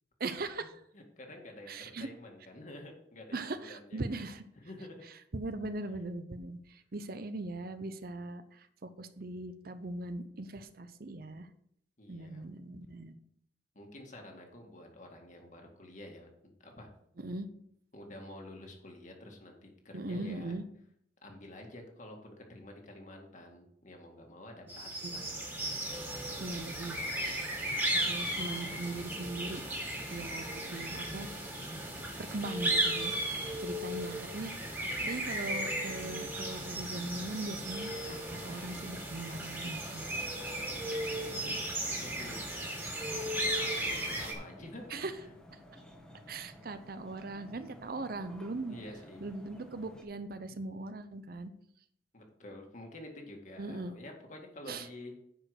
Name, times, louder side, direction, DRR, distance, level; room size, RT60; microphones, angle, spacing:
voice 1, 0.2-0.8 1.7-2.1 3.3-4.4 5.3-11.5 12.1-13.1 17.2-17.5 19.9-20.6 25.0-25.2 26.4-27.5 27.9-29.6 30.1-31.3 32.2-33.1 33.6-34.5 34.8-40.1 44.9-45.1 45.5-45.6 46.3-48.8 49.2-51.5 53.6-54.0 54.7-54.9, right 2 dB, 55° right, 11 dB, 0.7 m, -40 dB
voice 2, 0.9-4.0 4.5-5.0 12.0-12.5 13.8-16.9 17.9-20.5 21.2-25.5 30.1-30.2 33.9-34.0 41.2-41.7 42.0-42.4 43.4-45.3 46.2-46.3 48.7-49.2 52.1-55.2, left 1 dB, 45° left, 2 dB, 2.0 m, -49 dB
sound 1, 24.7-44.3, right 1 dB, 10° right, 2.2 m, -35 dB
sound 2, 37.7-50.0, equal, 5° left, 1.2 m, -53 dB
10.0 x 5.2 x 6.4 m, 0.72 s
head